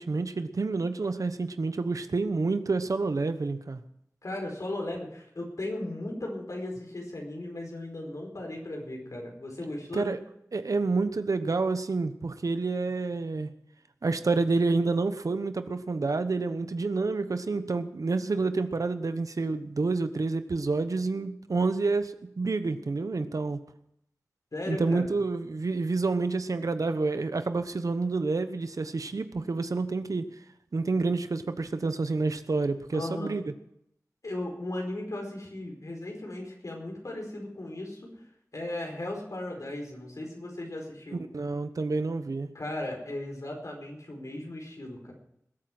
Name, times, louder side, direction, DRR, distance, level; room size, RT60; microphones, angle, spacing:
voice 1, 0.0-3.8 9.9-10.2 10.5-13.5 14.0-23.6 24.7-30.2 30.7-33.4 41.1-42.5, right 3 dB, 90° right, 10 dB, 1.1 m, -28 dB
voice 2, 4.2-10.1 24.5-25.1 32.9-33.3 34.2-38.1 38.5-41.3 42.5-45.1, left 1 dB, 75° left, 1 dB, 4.7 m, -36 dB
20.5 x 8.8 x 6.1 m, 0.76 s
wide cardioid pair, 55°, 6 cm